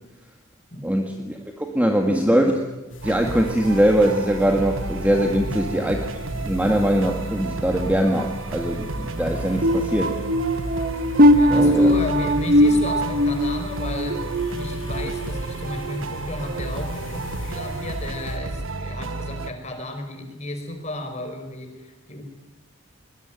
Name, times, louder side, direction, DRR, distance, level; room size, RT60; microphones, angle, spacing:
voice 1, 0.8-2.7 3.0-6.0 6.4-10.1 11.5-11.9, equal, 5° right, 3 dB, 1.9 m, -22 dB
sound 1, 2.9-18.4, left 1 dB, 60° left, 4.4 m, -39 dB
sound 2, 3.0-19.5, right 2 dB, 70° right, 1.3 m, -32 dB
sound 3, 9.6-15.3 15.7-16.0 16.5-16.7, equal, 45° right, 1.5 m, -20 dB
voice 2, 11.2-14.3 14.6-22.2, left 1 dB, 35° left, 6 dB, 4.9 m, -33 dB
22.5 x 20.5 x 9.2 m, 1.1 s
head